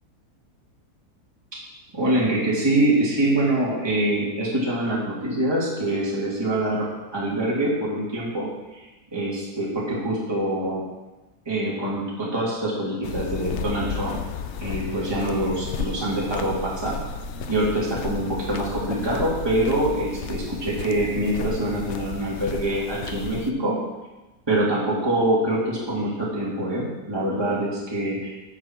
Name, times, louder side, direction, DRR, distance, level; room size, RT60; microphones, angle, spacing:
voice 1, 1.9-6.9 7.1-8.5 8.7-8.8 9.1-10.8 11.5-14.2 14.6-17.0 17.5-23.8 24.5-28.4, right 1 dB, 15° right, -6 dB, 2.4 m, -24 dB
sound 1, 13.0-23.5, left 6 dB, 60° left, 0.8 m, -33 dB
14.0 x 6.9 x 4.5 m, 1.1 s
omnidirectional pair, 1.7 m